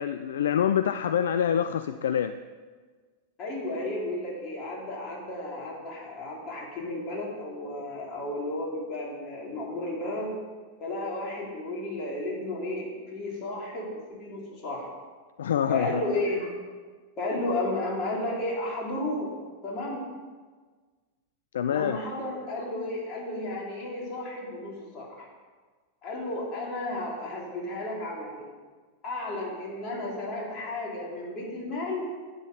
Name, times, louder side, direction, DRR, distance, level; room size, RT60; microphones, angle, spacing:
voice 1, 0.0-2.4 15.4-16.0 21.5-22.0, left 9 dB, 65° left, 11 dB, 0.4 m, -26 dB
voice 2, 3.4-10.3 10.8-14.9 15.7-16.5 17.2-19.3 19.6-20.0 21.7-25.3 26.0-28.5 29.0-32.1, left 2 dB, 35° left, -3 dB, 3.5 m, -33 dB
11.5 x 9.4 x 5.2 m, 1.5 s
figure-of-eight pair, 90°, 0 cm